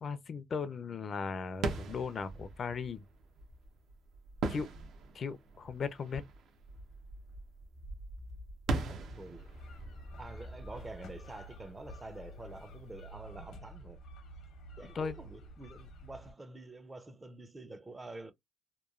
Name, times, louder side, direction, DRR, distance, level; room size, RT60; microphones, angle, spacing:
voice 1, 0.0-3.0 4.5-4.7 5.1-6.2 14.9-15.1, left 5 dB, 50° left, 0.4 m, -37 dB
sound 1, 1.5-12.1, right 3 dB, 75° right, 0.7 m, -41 dB
voice 2, 8.7-9.5 10.2-14.0 14.8-18.3, right 2 dB, 20° right, 0.4 m, -47 dB
sound 2, 9.4-16.3, equal, 80° left, 0.7 m, -50 dB
2.9 x 2.2 x 2.4 m
cardioid pair, 90°, 0 cm